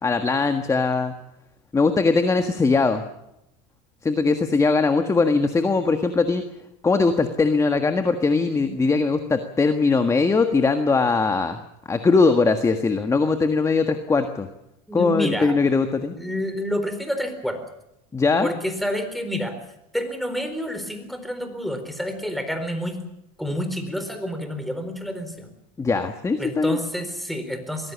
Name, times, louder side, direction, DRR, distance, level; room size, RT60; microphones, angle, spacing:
voice 1, 0.0-1.1 1.7-3.0 4.0-6.4 6.8-11.6 11.8-14.5 14.9-16.1 18.1-18.5 25.8-26.8, left 4 dB, 15° left, 8 dB, 1.6 m, -20 dB
voice 2, 14.9-15.5 16.1-17.6 18.4-19.6 19.9-23.0 23.4-25.5 26.4-27.9, equal, ahead, 8 dB, 4.2 m, -28 dB
22.5 x 17.0 x 8.5 m, 0.84 s
supercardioid pair, 120°, 19 cm